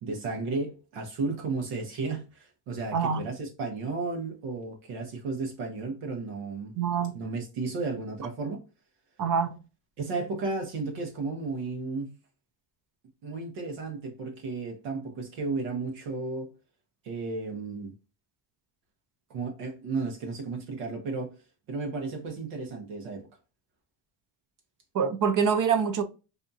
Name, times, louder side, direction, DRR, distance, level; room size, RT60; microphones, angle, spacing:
voice 1, 0.0-6.7 7.1-8.6 10.0-12.1 13.2-16.5 17.0-17.9 19.3-21.3 21.7-23.3, right 3 dB, 85° right, 1.1 m, -33 dB
voice 2, 2.9-3.2 6.8-7.2 9.2-9.6 24.9-26.0, right 6 dB, 40° right, 0.6 m, -25 dB
2.7 x 2.3 x 2.6 m
supercardioid pair, 80°, 48 cm